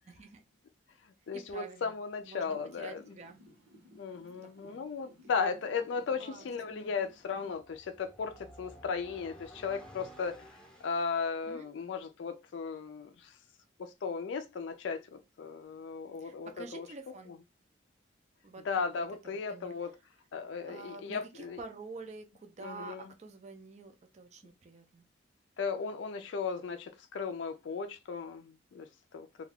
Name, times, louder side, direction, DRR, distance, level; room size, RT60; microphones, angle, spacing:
voice 1, 0.1-0.4 1.3-1.9 2.2-3.4 4.4-4.9 6.2-6.9 11.5-11.7 16.2-17.3 18.4-18.7 19.2-19.7 20.6-25.1, right 3 dB, 35° right, 0.4 m, -48 dB
voice 2, 1.3-3.0 4.0-10.4 10.8-13.3 13.8-16.9 18.6-19.9 20.3-21.6 22.6-23.0 25.6-28.9 29.1-29.3, left 5 dB, 70° left, 0.4 m, -36 dB
sound 1, 2.5-7.5, equal, 80° right, 1.0 m, -58 dB
sound 2, 5.9-11.3, equal, 5° left, 0.7 m, -55 dB
2.3 x 2.2 x 3.4 m
head